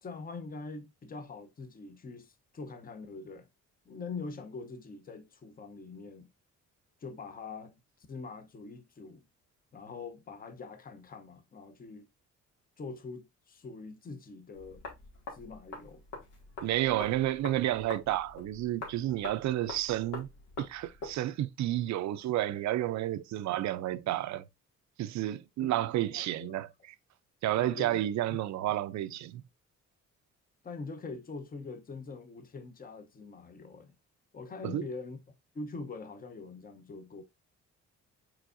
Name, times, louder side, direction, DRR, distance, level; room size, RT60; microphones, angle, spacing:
voice 1, 0.0-3.5 3.9-6.3 7.0-7.8 8.1-9.2 9.7-12.1 12.8-14.8 15.3-16.0 25.6-25.7 26.1-26.6 27.6-28.0 28.3-28.4 30.6-33.9 34.3-35.2 35.5-37.2, left 4 dB, 30° left, 0.8 m, -43 dB
sound 1, 14.5-21.1, left 2 dB, 85° left, 1.9 m, -45 dB
voice 2, 16.6-20.3 20.6-24.5 25.0-26.7 27.4-29.4 34.6-34.8, right 14 dB, 70° right, 0.5 m, -31 dB
4.8 x 4.3 x 2.5 m
cardioid pair, 90°, 30 cm